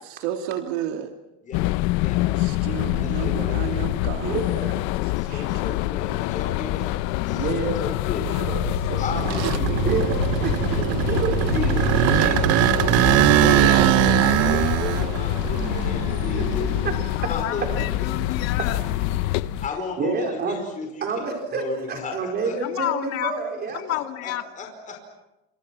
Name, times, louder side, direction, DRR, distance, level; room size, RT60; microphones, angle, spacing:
voice 1, 0.1-1.1 2.3-4.5 5.3-5.5 8.2-8.4 9.7-9.9 11.1-11.4 12.2-12.3 13.2-13.4 15.4-15.5, right 10 dB, 90° right, 4 dB, 2.5 m, -32 dB
sound 1, 1.5-19.7, left 18 dB, 65° left, 0.9 m, -26 dB
voice 2, 3.0-3.9 5.2-6.9 7.3-8.5 9.0-9.9 10.7-11.1 11.5-12.7 13.0-16.7 17.3-17.6 18.3-18.4 19.6-21.0 21.5-22.6 23.9-25.0, left 4 dB, 25° left, 2 dB, 5.1 m, -34 dB
voice 3, 4.2-5.1 7.3-7.9 8.4-9.0 9.8-11.7 13.6-13.9 16.3-16.5 16.8-16.9 20.0-20.6 21.0-23.8, right 4 dB, 30° right, 2 dB, 4.4 m, -29 dB
voice 4, 7.7-9.0 17.2-18.8 22.6-23.3 23.7-24.4, left 13 dB, 50° left, 7 dB, 2.1 m, -31 dB
sound 2, 8.2-17.3 17.7-19.6, right 15 dB, 50° right, 0.9 m, -22 dB
30.0 x 28.0 x 6.1 m, 0.96 s
cardioid pair, 165°, 33 cm